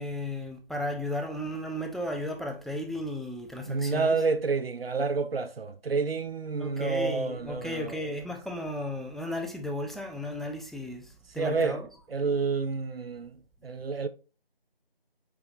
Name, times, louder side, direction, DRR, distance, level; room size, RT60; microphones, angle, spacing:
voice 1, 0.0-4.2 6.6-11.9, left 1 dB, ahead, 0.4 m, -34 dB
voice 2, 3.7-8.0 11.4-11.8 12.1-14.1, right 4 dB, 75° right, 0.6 m, -29 dB
4.7 x 4.6 x 2.4 m
figure-of-eight pair, 175°, 30 cm